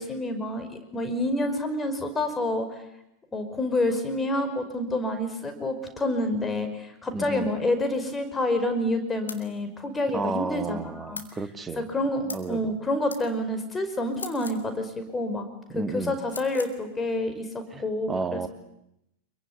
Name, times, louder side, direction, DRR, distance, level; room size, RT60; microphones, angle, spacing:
voice 1, 0.0-2.8 3.3-11.2 11.8-18.5, left 1 dB, 15° left, 8 dB, 5.4 m, -28 dB
voice 2, 7.1-7.5 10.1-11.9 12.3-12.6 15.7-16.2 17.7-17.8 18.1-18.5, right 3 dB, 15° right, 8 dB, 2.1 m, -32 dB
sound 1, 9.3-9.5 11.1-11.3 12.3-12.5 13.1-13.2 14.1-14.6 16.3-16.7, left 4 dB, 75° left, 2.9 m, -39 dB
26.5 x 23.0 x 9.7 m, 0.83 s
figure-of-eight pair, 90°, 0 cm